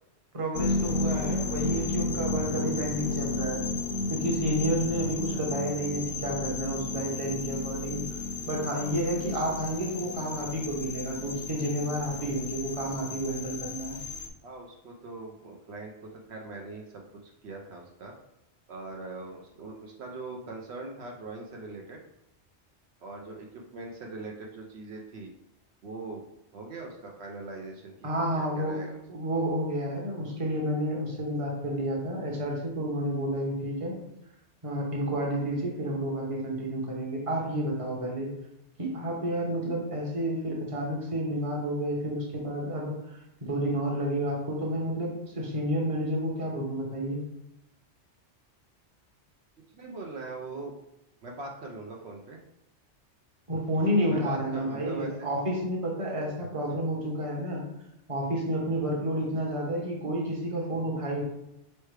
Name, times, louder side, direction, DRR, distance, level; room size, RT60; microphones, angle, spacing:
voice 1, 0.3-3.6 4.1-8.0 8.5-14.0 28.0-28.8 29.1-33.9 34.6-38.3 38.8-47.2 53.5-57.6 58.1-61.2, right 1 dB, 30° right, -1 dB, 0.9 m, -30 dB
sound 1, 0.5-14.3, left 3 dB, 60° left, 0.6 m, -33 dB
voice 2, 14.4-18.1 18.7-22.0 23.0-25.3 25.8-26.2 26.5-28.1 28.4-29.0 49.7-50.7 51.2-52.4 54.1-55.1 56.4-56.5, right 3 dB, 70° right, 0 dB, 0.9 m, -41 dB
4.4 x 3.2 x 3.2 m, 0.84 s
omnidirectional pair, 1.2 m